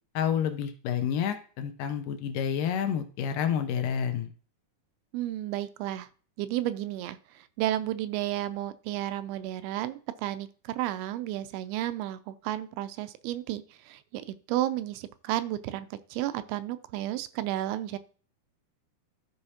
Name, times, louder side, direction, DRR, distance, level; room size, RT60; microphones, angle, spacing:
voice 1, 0.2-4.3, left 8 dB, 75° left, 7 dB, 2.1 m, -29 dB
voice 2, 5.1-6.1 6.4-18.0, right 14 dB, 85° right, 12 dB, 2.5 m, -32 dB
13.0 x 4.9 x 2.8 m, 0.41 s
omnidirectional pair, 4.5 m